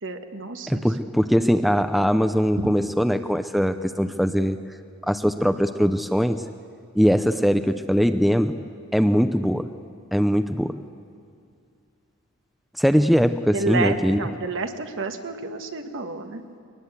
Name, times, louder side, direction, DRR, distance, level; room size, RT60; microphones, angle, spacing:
voice 1, 0.0-0.8 2.6-2.7 10.3-10.4 13.5-16.4, right 3 dB, 60° right, 6 dB, 1.5 m, -30 dB
voice 2, 0.7-4.6 5.1-6.4 7.0-8.6 8.9-9.7 10.1-10.8 12.8-14.2, equal, ahead, 8 dB, 0.5 m, -21 dB
22.0 x 20.0 x 8.2 m, 2.3 s
head